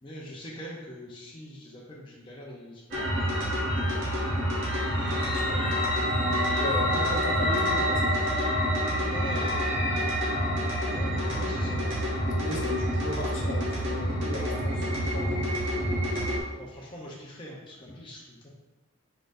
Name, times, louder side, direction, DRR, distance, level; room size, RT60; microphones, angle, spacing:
voice 1, 0.0-3.1 3.9-4.0 8.9-9.9 10.9-11.8 16.6-18.5, equal, 25° left, -4 dB, 0.6 m, -43 dB
sound 1, 2.9-16.4, equal, 55° right, 1.4 m, -27 dB
voice 2, 5.0-8.2 12.4-15.5, left 1 dB, 60° left, -1 dB, 0.9 m, -36 dB
4.8 x 4.2 x 2.5 m, 1.1 s
head